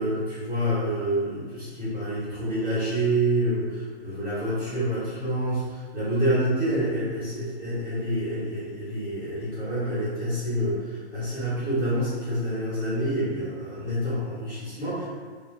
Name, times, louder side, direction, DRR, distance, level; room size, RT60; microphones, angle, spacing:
voice 1, 0.0-15.1, right 1 dB, 10° right, -13 dB, 0.7 m, -27 dB
2.9 x 2.2 x 3.3 m, 1.5 s
figure-of-eight pair, 120°, 34 cm